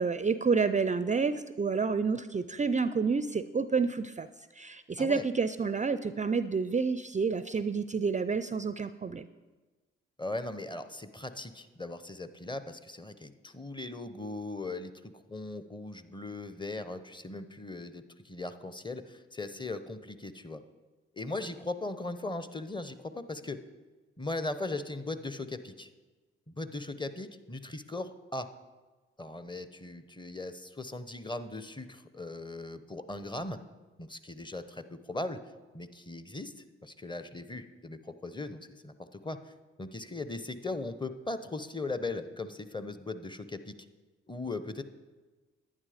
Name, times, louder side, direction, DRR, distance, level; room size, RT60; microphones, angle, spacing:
voice 1, 0.0-4.3 4.6-9.3, right 5 dB, 25° right, 13 dB, 0.5 m, -29 dB
voice 2, 10.2-20.6 21.1-23.6 24.2-25.9 26.5-28.5 29.2-33.6 34.0-35.4 35.7-39.5 39.8-43.8 44.3-44.8, left 2 dB, 15° left, 11 dB, 0.9 m, -39 dB
11.0 x 9.6 x 5.1 m, 1.3 s
hypercardioid pair, 45°, 29 cm